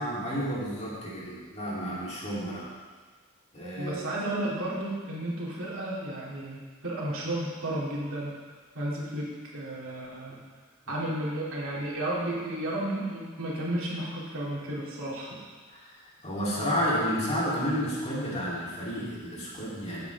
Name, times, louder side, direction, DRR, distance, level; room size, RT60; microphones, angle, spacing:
voice 1, 0.0-2.7 3.5-4.0 15.7-15.8 16.2-20.0, equal, 30° left, -7 dB, 3.3 m, -31 dB
voice 2, 3.8-8.3 8.7-10.4 10.9-15.4, right 1 dB, 65° right, -5 dB, 3.0 m, -33 dB
14.5 x 8.9 x 3.6 m, 1.5 s
head